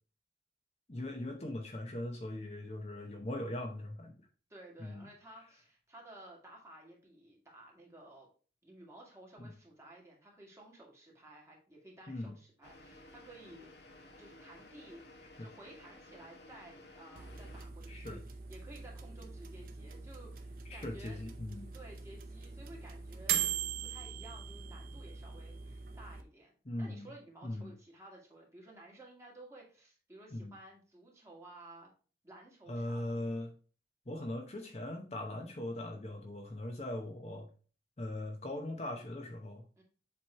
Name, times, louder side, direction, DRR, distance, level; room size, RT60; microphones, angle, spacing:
voice 1, 0.9-4.1 4.8-5.1 9.4-9.5 12.1-12.3 15.4-15.5 17.9-18.2 20.7-21.7 26.6-27.1 27.4-27.7 30.3-30.5 32.7-33.5 34.1-37.5 38.0-39.6, left 1 dB, 35° left, 3 dB, 0.8 m, -40 dB
voice 2, 4.5-8.3 8.6-13.7 14.2-15.0 15.4-18.2 18.5-21.2 21.7-23.5 23.8-26.5 26.8-31.9 32.2-33.2 39.8-39.9, right 1 dB, 15° right, -2 dB, 1.8 m, -54 dB
sound 1, 12.6-17.7, left 1 dB, 65° left, 1.0 m, -55 dB
sound 2, 17.2-26.2, right 8 dB, 50° right, 0.6 m, -41 dB
7.6 x 3.1 x 4.2 m, 0.39 s
head